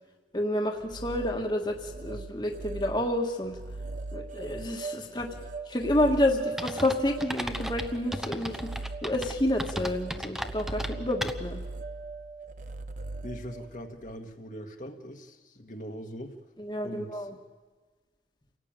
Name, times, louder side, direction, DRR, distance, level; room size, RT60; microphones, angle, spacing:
voice 1, 0.3-3.6 4.1-5.3 5.7-8.6 9.0-11.6 16.6-17.3, left 1 dB, 25° left, 2 dB, 1.7 m, -29 dB
sound 1, 0.6-14.1, right 3 dB, 45° right, 1.1 m, -40 dB
sound 2, 6.6-11.7, equal, ahead, 0.9 m, -36 dB
voice 2, 13.2-16.3 16.8-17.3, equal, 45° left, 3 dB, 1.8 m, -41 dB
29.0 x 17.5 x 9.0 m, 1.4 s
head